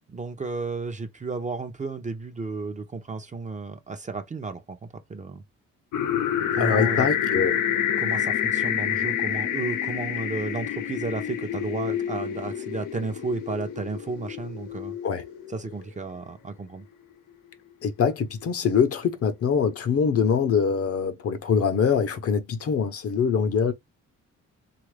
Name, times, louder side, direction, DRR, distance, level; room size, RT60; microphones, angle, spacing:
voice 1, 0.1-5.4 6.6-7.1 8.0-15.0 15.5-16.9, right 4 dB, 25° right, 0.6 m, -33 dB
sound 1, 5.9-15.8, left 10 dB, 85° left, 0.8 m, -28 dB
voice 2, 6.6-7.5 15.0-15.2 17.8-23.7, left 6 dB, 50° left, 0.7 m, -23 dB
2.9 x 2.5 x 3.2 m
cardioid pair, 90°, 30 cm